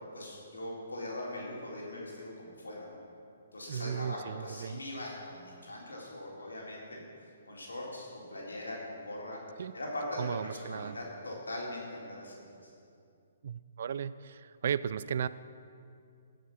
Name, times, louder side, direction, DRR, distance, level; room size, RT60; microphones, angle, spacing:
voice 1, 0.1-3.0 3.5-7.0 7.5-9.4 9.7-12.7, left 1 dB, 90° left, -4 dB, 4.0 m, -41 dB
voice 2, 3.7-4.8 9.6-9.7 10.2-11.0 13.4-15.3, right 8 dB, 60° right, 16 dB, 0.5 m, -35 dB
17.5 x 7.5 x 6.1 m, 2.4 s
hypercardioid pair, 140°, 0 cm